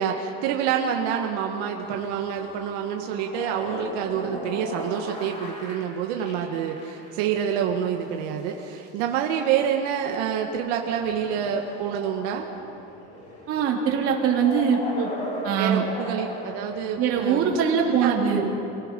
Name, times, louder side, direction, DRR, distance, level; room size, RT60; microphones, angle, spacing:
voice 1, 0.0-12.5 15.6-17.5 17.8-18.5, right 8 dB, 85° right, 2 dB, 1.8 m, -27 dB
sound 1, 1.8-17.8, left 1 dB, 25° left, 5.1 m, -39 dB
voice 2, 13.5-15.1 15.4-15.8 17.0-18.4, right 6 dB, 45° right, -1 dB, 3.0 m, -22 dB
28.0 x 18.0 x 5.4 m, 2.8 s
cardioid pair, 170°, 31 cm